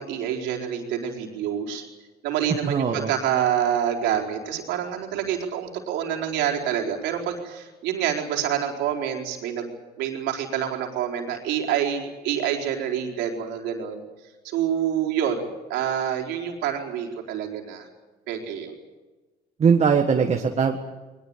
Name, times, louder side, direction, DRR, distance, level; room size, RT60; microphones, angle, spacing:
voice 1, 0.0-1.8 2.2-9.7 10.0-14.0 14.4-17.9 18.3-18.7, right 9 dB, 90° right, 1 dB, 4.4 m, -27 dB
voice 2, 2.6-3.1 19.6-20.8, right 6 dB, 40° right, 4 dB, 1.7 m, -20 dB
22.0 x 20.5 x 8.8 m, 1.2 s
cardioid pair, 110°, 17 cm